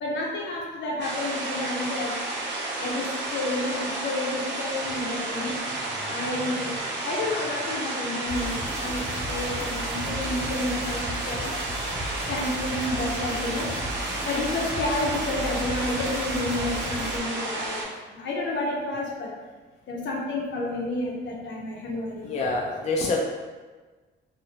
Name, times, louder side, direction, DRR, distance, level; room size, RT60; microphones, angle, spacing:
voice 1, 0.0-2.2 2.8-5.6 5.9-11.5 12.3-13.7 14.3-19.3 19.9-22.4, left 2 dB, 65° left, -2 dB, 0.7 m, -30 dB
sound 1, 1.0-17.8, right 2 dB, 65° right, 0.7 m, -32 dB
sound 2, 8.3-17.2, equal, 15° right, 0.7 m, -36 dB
voice 2, 22.2-23.2, left 3 dB, 35° left, -2 dB, 0.4 m, -26 dB
2.7 x 2.0 x 2.8 m, 1.3 s
cardioid pair, 90°, 20 cm